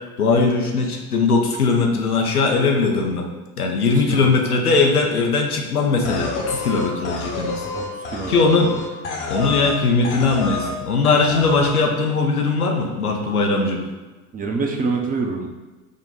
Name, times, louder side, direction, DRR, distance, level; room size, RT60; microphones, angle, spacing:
voice 1, 0.2-3.3 3.6-7.7 8.3-8.7 9.3-13.8, left 4 dB, 90° left, 2 dB, 0.6 m, -19 dB
voice 2, 4.0-4.6 7.7-8.3 14.3-15.5, right 4 dB, 20° right, 2 dB, 0.5 m, -26 dB
sound 1, 6.0-9.8 10.0-10.8 11.0-11.8, left 2 dB, 45° left, 0.9 m, -29 dB
5.0 x 2.2 x 3.9 m, 1.2 s
figure-of-eight pair, 60°, 43 cm